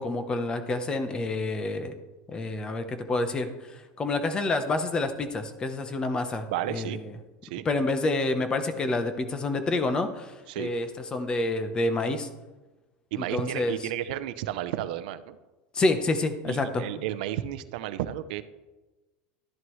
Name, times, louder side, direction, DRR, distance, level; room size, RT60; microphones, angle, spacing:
voice 1, 0.0-1.9 2.3-7.0 7.6-12.3 13.2-13.8 15.7-16.8, left 2 dB, 15° left, 9 dB, 0.8 m, -28 dB
voice 2, 6.5-7.0 7.4-7.7 10.5-10.7 13.1-15.4 16.5-18.4, right 12 dB, 70° right, 11 dB, 0.6 m, -32 dB
12.5 x 11.0 x 3.1 m, 1.2 s
supercardioid pair, 165°, 5 cm